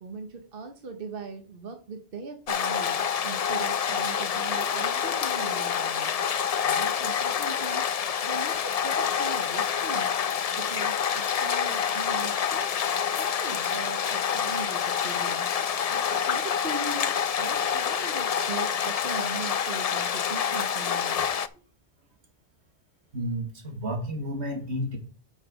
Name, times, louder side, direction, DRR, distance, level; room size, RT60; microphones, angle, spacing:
voice 1, 0.0-6.2 6.6-7.9 8.2-10.2 10.5-12.8 13.1-15.5 15.9-21.3, right 4 dB, 55° right, 5 dB, 1.3 m, -40 dB
sound 1, 2.5-21.5, left 8 dB, 50° left, 0.5 m, -27 dB
voice 2, 23.1-25.0, equal, 80° right, 4 dB, 2.1 m, -31 dB
8.0 x 5.8 x 5.0 m, 0.40 s
omnidirectional pair, 1.1 m